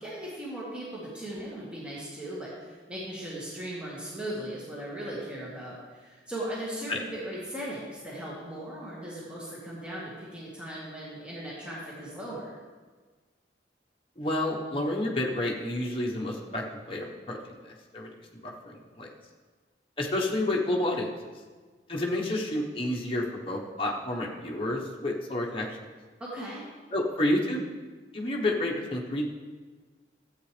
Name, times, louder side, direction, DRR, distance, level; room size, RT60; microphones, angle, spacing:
voice 1, 0.0-12.5 26.2-26.6, right 1 dB, 5° right, -7 dB, 1.7 m, -38 dB
voice 2, 14.2-19.1 20.0-21.1 21.9-25.7 26.9-27.6 28.1-29.3, left 1 dB, 30° left, -2 dB, 1.1 m, -30 dB
13.0 x 8.2 x 3.3 m, 1.4 s
head